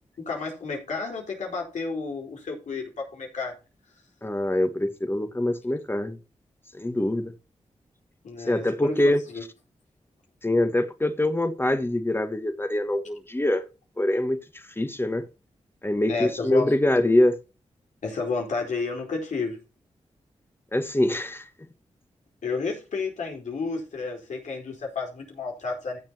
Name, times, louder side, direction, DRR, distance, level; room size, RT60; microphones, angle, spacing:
voice 1, 0.2-3.5 8.2-9.0 9.3-9.4 16.1-16.7 18.0-19.6 22.4-26.0, left 4 dB, 85° left, 4.5 m, -31 dB
voice 2, 4.2-6.2 6.7-7.3 8.4-9.2 10.4-13.6 14.0-14.4 14.8-15.2 15.8-17.4 20.7-21.5, left 1 dB, 20° left, 1.6 m, -24 dB
15.5 x 7.3 x 2.9 m
cardioid pair, 55°, 12 cm